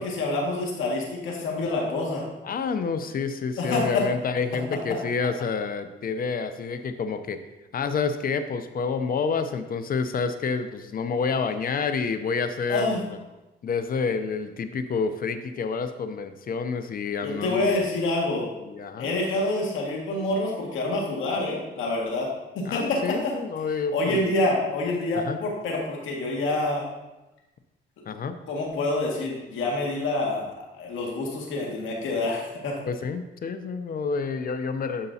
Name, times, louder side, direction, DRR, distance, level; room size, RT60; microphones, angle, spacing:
voice 1, 0.0-2.2 3.6-4.0 12.7-13.0 17.2-18.4 19.0-22.3 22.6-23.3 23.9-26.9 28.5-32.7, left 2 dB, 80° left, -2 dB, 1.9 m, -27 dB
voice 2, 2.4-7.4 7.7-13.2 13.6-17.8 18.6-19.1 22.6-24.3 25.1-25.4 28.1-28.4 32.9-35.1, left 5 dB, 45° left, 10 dB, 0.6 m, -28 dB
11.0 x 5.3 x 2.7 m, 1.0 s
cardioid pair, 90°, 20 cm